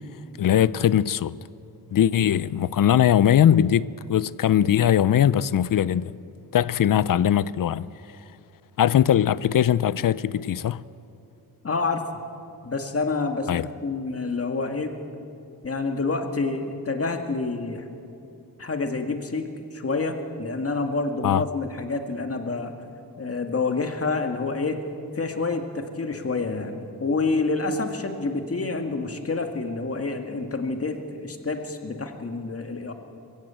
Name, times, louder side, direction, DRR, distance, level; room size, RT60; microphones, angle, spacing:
voice 1, 0.4-1.4 1.9-6.1 6.5-7.9 8.8-10.8 13.5-13.7 21.2-21.4, left 10 dB, 60° left, 0.5 m, -20 dB
voice 2, 11.6-12.0 12.6-15.0 15.6-17.9 18.6-22.7 23.2-24.8 25.2-32.9, left 3 dB, 35° left, 1.9 m, -28 dB
21.5 x 15.5 x 8.8 m
wide cardioid pair, 100°, 38 cm